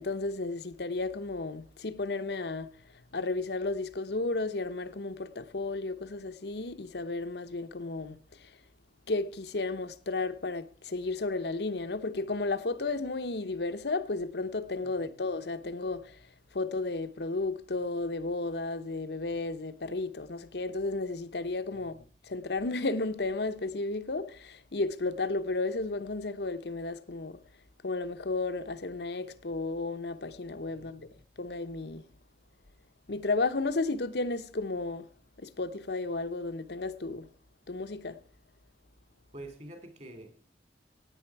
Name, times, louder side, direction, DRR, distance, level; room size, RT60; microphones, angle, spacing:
voice 1, 0.0-2.7 3.1-8.6 9.1-16.3 16.5-27.4 27.8-31.1 31.4-32.1 33.1-35.1 35.4-37.3 37.7-38.2, left 3 dB, 60° left, 0.9 m, -33 dB
voice 2, 30.7-31.1 39.3-40.4, right 1 dB, 40° right, 2.7 m, -47 dB
16.0 x 9.5 x 4.7 m
head